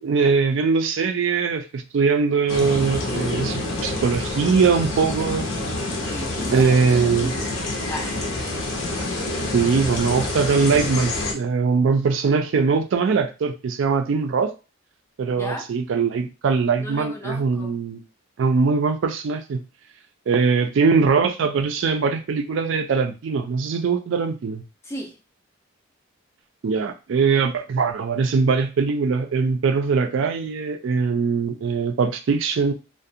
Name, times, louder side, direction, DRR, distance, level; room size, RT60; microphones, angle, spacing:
voice 1, 0.0-5.5 6.5-7.3 9.5-14.5 15.2-18.0 18.4-19.6 20.3-24.6 26.6-32.7, right 5 dB, 65° right, 7 dB, 0.3 m, -21 dB
sound 1, 2.5-11.3, left 2 dB, 85° left, 0.6 m, -27 dB
voice 2, 6.0-7.4 7.9-8.3 15.3-15.7 16.8-17.8 24.8-25.2, left 1 dB, 15° left, 2 dB, 0.4 m, -34 dB
2.4 x 2.1 x 2.6 m, 0.30 s
head